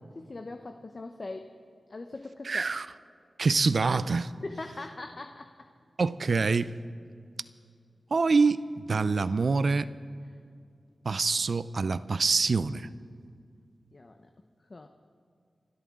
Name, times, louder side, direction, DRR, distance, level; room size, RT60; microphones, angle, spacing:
voice 1, 0.1-1.5 1.9-2.7 4.4-5.5 13.9-14.3 14.7-14.9, left 2 dB, 45° left, 0.8 m, -41 dB
voice 2, 2.4-2.9 3.4-4.3 6.0-6.7 8.1-9.9 11.0-12.9, right 4 dB, 60° right, 0.5 m, -25 dB
28.0 x 12.5 x 3.7 m
wide cardioid pair, 85°, 0 cm